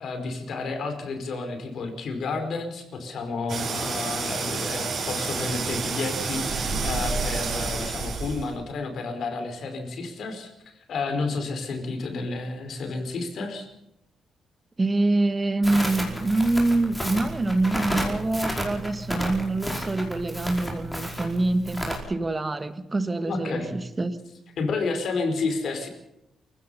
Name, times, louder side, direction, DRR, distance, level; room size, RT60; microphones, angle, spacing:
voice 1, 0.0-13.7 23.3-23.7 24.6-25.9, left 3 dB, 60° left, 4.9 m, -31 dB
sound 1, 3.5-8.6, right 4 dB, 45° right, 5.3 m, -29 dB
voice 2, 14.8-24.2, right 2 dB, 20° right, 1.5 m, -25 dB
Crackle, 15.6-22.0, equal, 5° left, 5.1 m, -32 dB
28.5 x 16.0 x 5.7 m
cardioid pair, 150°, 0 cm